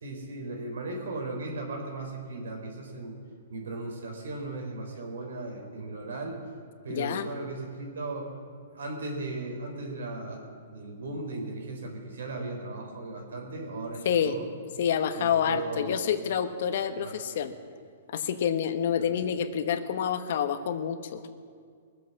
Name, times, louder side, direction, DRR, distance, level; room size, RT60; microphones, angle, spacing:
voice 1, 0.0-3.2 3.5-6.4 6.8-8.3 8.7-14.5 15.2-16.0 17.0-17.1 19.0-19.2, right 2 dB, 85° right, 2 dB, 3.9 m, -37 dB
voice 2, 6.9-7.3 14.0-14.3 14.8-17.5 18.1-21.2, left 8 dB, 60° left, 9 dB, 1.1 m, -28 dB
20.5 x 7.9 x 7.2 m, 2.2 s
hypercardioid pair, 150°, 0 cm